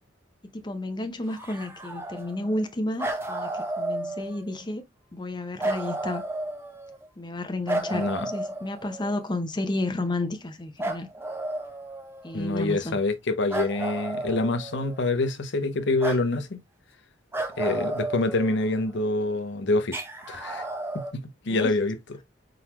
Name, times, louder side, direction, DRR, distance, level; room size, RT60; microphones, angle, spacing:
voice 1, 0.5-4.8 5.1-6.2 7.2-11.1 12.2-13.0 21.5-21.7, left 2 dB, 25° left, 0.7 m, -31 dB
sound 1, 1.3-2.7 3.0-4.6 5.6-7.1 7.7-9.3 10.8-12.5 13.5-15.2 16.0-16.2 17.3-19.0 19.9-21.1, right 1 dB, 10° right, 0.8 m, -33 dB
voice 2, 7.9-8.3 12.3-16.6 17.6-20.0 20.3-20.7 20.9-22.0, left 2 dB, 65° left, 0.7 m, -26 dB
4.5 x 3.9 x 2.9 m
head